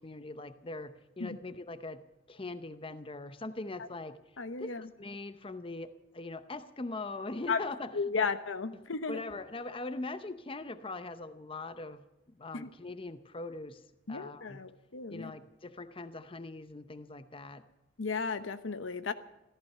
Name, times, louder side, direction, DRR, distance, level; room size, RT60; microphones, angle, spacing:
voice 1, 0.0-2.0 2.3-4.2 4.6-8.2 8.7-12.0 12.4-13.8 14.1-14.6 15.1-17.6, left 2 dB, 30° left, 11 dB, 0.7 m, -41 dB
voice 2, 4.4-4.8 7.5-7.6 7.9-9.2 12.5-12.7 14.1-15.3 18.0-19.1, left 4 dB, 85° left, 11 dB, 0.9 m, -34 dB
14.5 x 14.0 x 6.7 m, 0.95 s
head